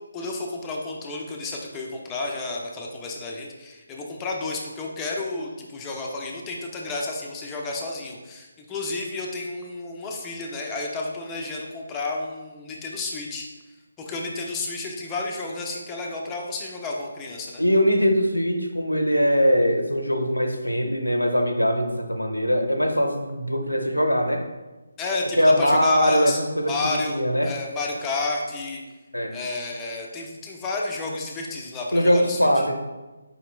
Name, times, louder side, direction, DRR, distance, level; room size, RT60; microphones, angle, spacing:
voice 1, 0.1-13.5 14.0-17.6 25.0-26.4 26.7-28.8 29.3-32.6, left 3 dB, 15° left, -1 dB, 0.5 m, -31 dB
voice 2, 17.6-24.4 25.4-27.5 29.1-29.4 31.9-32.7, equal, 90° left, 5 dB, 0.6 m, -21 dB
5.0 x 2.9 x 3.2 m, 1.1 s
figure-of-eight pair, 150°, 0 cm